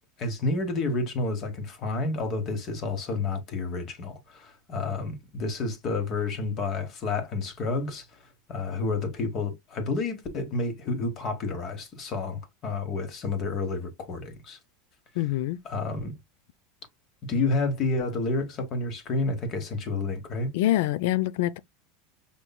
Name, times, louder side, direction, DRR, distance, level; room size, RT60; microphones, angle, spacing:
voice 1, 0.2-8.2 8.5-14.6 15.6-16.2 17.3-20.5, left 3 dB, 35° left, 1.1 m, -30 dB
voice 2, 15.2-15.6 20.5-21.6, left 14 dB, 70° left, 0.3 m, -25 dB
5.4 x 3.0 x 2.2 m
supercardioid pair, 150°, 0 cm